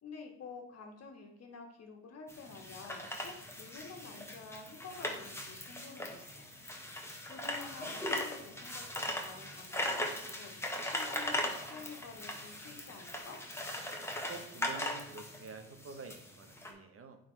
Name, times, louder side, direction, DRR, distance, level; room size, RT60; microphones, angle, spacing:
voice 1, 0.0-6.5 7.3-13.4, left 4 dB, 55° left, 3 dB, 1.6 m, -50 dB
sound 1, 2.3-16.7, left 1 dB, 10° left, 1.3 m, -39 dB
voice 2, 14.3-17.2, right 4 dB, 50° right, 6 dB, 1.1 m, -48 dB
8.8 x 4.1 x 3.3 m, 0.83 s
cardioid pair, 90°, 30 cm